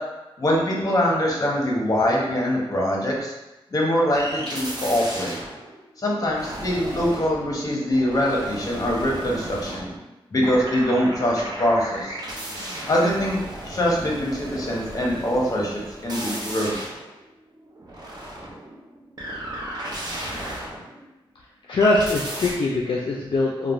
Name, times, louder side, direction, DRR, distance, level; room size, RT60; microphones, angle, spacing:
voice 1, 0.4-3.3 3.7-5.3 6.0-9.9 10.3-12.1 12.9-13.4 13.6-16.7, equal, 40° left, -3 dB, 0.8 m, -23 dB
sound 1, 4.1-10.2 10.4-21.2 21.8-22.5, right 1 dB, 45° right, 0.6 m, -35 dB
voice 2, 21.7-23.7, left 2 dB, 55° left, -4 dB, 0.4 m, -22 dB
3.0 x 2.1 x 2.4 m, 0.99 s
cardioid pair, 70°, 10 cm